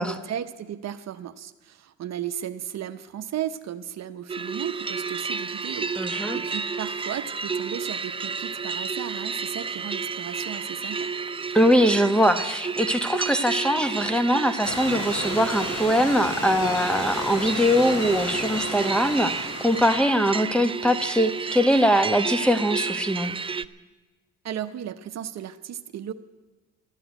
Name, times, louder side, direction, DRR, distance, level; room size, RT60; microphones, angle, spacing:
voice 1, 0.0-11.1 24.4-26.1, right 10 dB, 60° right, 10 dB, 0.8 m, -35 dB
sound 1, 4.3-23.7, right 5 dB, 20° right, 0.4 m, -31 dB
voice 2, 6.0-6.4 11.5-23.4, equal, 5° left, 9 dB, 1.1 m, -22 dB
Stream / Liquid, 14.6-20.0, left 2 dB, 50° left, 5.6 m, -33 dB
13.5 x 10.0 x 9.0 m, 1.2 s
cardioid pair, 90°, 30 cm